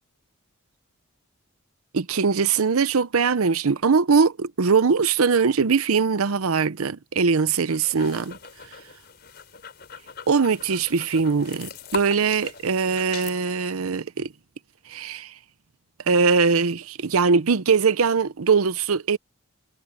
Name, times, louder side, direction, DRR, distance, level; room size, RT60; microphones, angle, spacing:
voice 1, 1.9-8.4 10.3-14.3 14.9-15.4 16.1-19.2, right 5 dB, 85° right, 0.7 m, -21 dB
sound 1, 7.6-13.4, left 6 dB, 45° left, 4.6 m, -40 dB
head